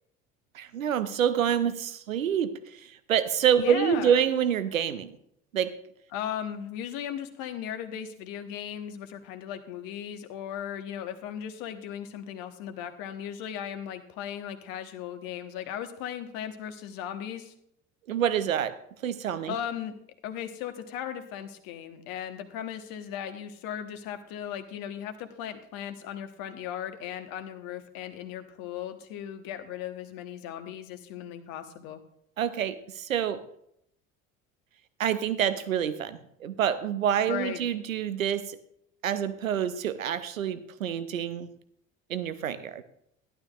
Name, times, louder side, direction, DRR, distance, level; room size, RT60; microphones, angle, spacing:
voice 1, 0.5-5.1 5.5-5.8 18.1-19.5 32.4-33.4 35.0-38.6 39.0-41.5 42.1-42.8, right 9 dB, 80° right, 13 dB, 0.7 m, -27 dB
voice 2, 3.6-4.2 6.1-17.5 19.5-19.9 20.2-32.0 37.3-37.6, left 9 dB, 60° left, 8 dB, 1.2 m, -37 dB
15.0 x 11.5 x 2.4 m, 0.73 s
figure-of-eight pair, 55°, 40 cm